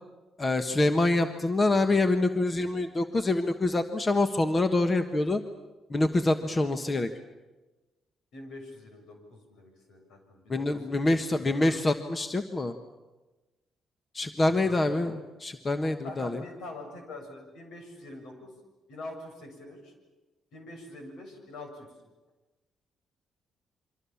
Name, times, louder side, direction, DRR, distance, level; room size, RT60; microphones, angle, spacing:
voice 1, 0.4-5.4 5.9-7.1 10.5-12.7 14.1-16.4, left 2 dB, 30° left, 8 dB, 1.4 m, -26 dB
voice 2, 8.3-11.2 11.5-11.8 14.4-15.0 16.0-18.5 18.9-19.9 20.5-21.9, left 2 dB, 75° left, 4 dB, 7.1 m, -44 dB
28.5 x 24.5 x 7.3 m, 1.1 s
cardioid pair, 90°, 0 cm